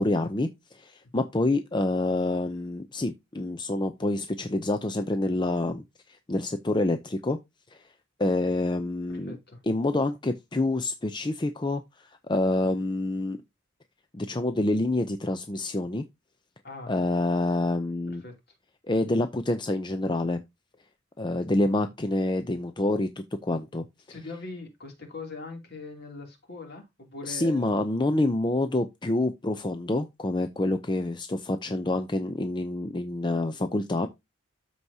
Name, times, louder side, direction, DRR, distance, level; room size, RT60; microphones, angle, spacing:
voice 1, 0.0-5.8 6.1-7.4 7.7-7.8 8.2-9.3 9.7-13.4 14.1-16.0 16.9-18.2 18.9-20.4 21.2-23.8 27.3-34.1, left 2 dB, 20° left, 0.5 m, -27 dB
voice 2, 9.1-9.6 16.6-16.9 18.2-18.3 24.1-27.7 28.0-28.1, left 2 dB, 55° left, 2.9 m, -41 dB
13.5 x 4.7 x 2.8 m
head